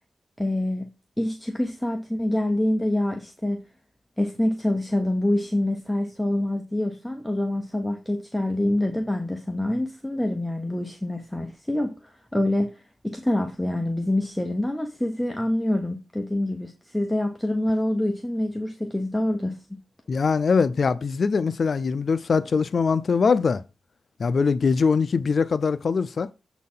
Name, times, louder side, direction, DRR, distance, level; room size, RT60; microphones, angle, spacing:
voice 1, 0.4-0.8 1.2-3.6 4.2-11.9 12.3-12.7 13.0-19.5, left 1 dB, ahead, 0.8 m, -26 dB
voice 2, 20.1-23.6 24.2-26.3, left 5 dB, 50° left, 0.4 m, -22 dB
7.4 x 4.1 x 5.5 m
wide cardioid pair, 130°, 0 cm